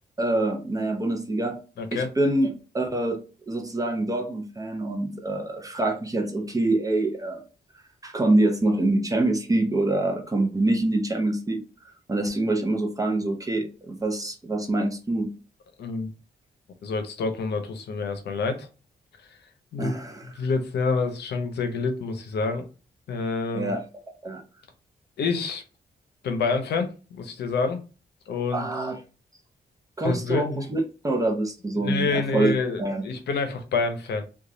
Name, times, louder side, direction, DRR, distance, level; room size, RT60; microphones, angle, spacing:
voice 1, 0.2-1.6 1.9-3.2 3.5-7.4 8.0-11.6 12.1-15.3 19.8-20.3 23.5-23.8 24.2-24.4 28.5-29.0 30.0-32.5 32.8-33.0, right 2 dB, 20° right, 3 dB, 0.6 m, -25 dB
voice 2, 1.8-2.1 15.8-16.1 16.8-18.7 19.7-19.9 20.4-22.7 23.1-23.7 25.2-25.6 26.2-27.8 28.3-28.7 30.0-30.7 31.8-34.2, left 4 dB, 80° left, 7 dB, 0.6 m, -27 dB
3.0 x 2.3 x 2.6 m, 0.33 s
cardioid pair, 90°, 17 cm